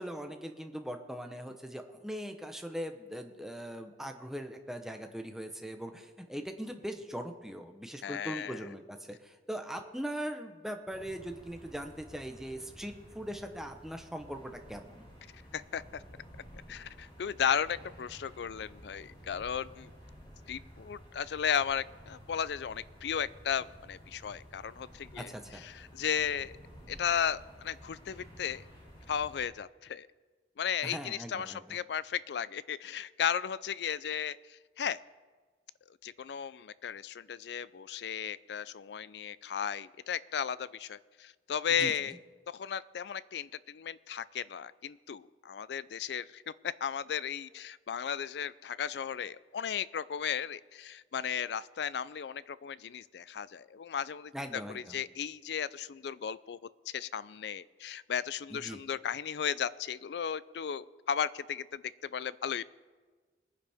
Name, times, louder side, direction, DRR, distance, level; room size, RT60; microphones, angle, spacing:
voice 1, 0.0-15.0 25.2-25.6 30.8-31.8 41.8-42.2 54.3-55.0 58.5-58.8, equal, ahead, 5 dB, 0.8 m, -40 dB
voice 2, 8.0-8.6 15.5-16.0 16.7-19.9 20.5-26.5 26.9-28.6 29.1-30.1 30.6-35.0 36.0-42.1 42.5-56.6 56.9-61.8 62.1-62.6, left 8 dB, 70° left, 18 dB, 0.4 m, -35 dB
sound 1, 10.9-29.4, equal, 30° left, 4.2 m, -53 dB
21.0 x 9.8 x 3.5 m, 1.4 s
head